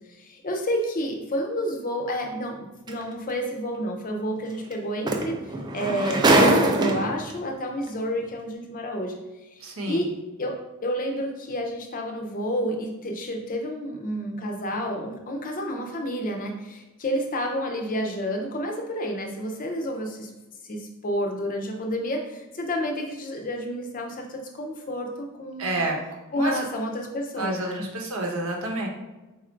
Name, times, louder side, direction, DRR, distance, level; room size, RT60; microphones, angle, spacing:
voice 1, 0.4-2.5 2.9-5.3 5.7-9.2 9.9-10.1 10.4-10.6 10.8-16.5 17.0-20.1 20.7-20.8 21.0-22.2 22.6-24.3 24.6-25.1 25.4-25.8 26.3-27.8, equal, 40° left, 3 dB, 0.6 m, -29 dB
sound 1, 2.9-3.0 4.7-4.8 5.1-7.3 8.2-8.3, right 2 dB, 20° right, 0.3 m, -21 dB
voice 2, 9.6-10.0 25.6-26.0 26.4-26.6 27.4-28.9, right 2 dB, 65° right, 0 dB, 0.9 m, -29 dB
4.0 x 2.5 x 4.4 m, 1.1 s
head